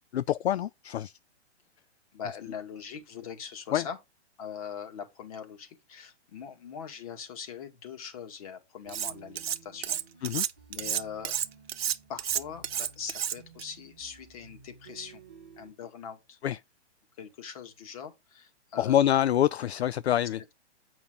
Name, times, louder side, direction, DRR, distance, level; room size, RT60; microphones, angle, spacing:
voice 1, 0.1-1.2 3.7-3.9 10.2-10.4 16.4-16.6 18.8-20.4, left 11 dB, 65° left, 0.5 m, -26 dB
voice 2, 2.1-4.0 4.4-10.3 10.7-11.4 12.1-15.2 15.6-16.4 17.2-19.0, left 7 dB, 30° left, 2.1 m, -42 dB
sound 1, 8.8-15.7, right 5 dB, 5° right, 0.4 m, -54 dB
Cutlery silverware, 8.9-9.6 9.8-13.6, right 10 dB, 60° right, 1.0 m, -31 dB
8.7 x 5.7 x 4.0 m
hypercardioid pair, 170°, 35 cm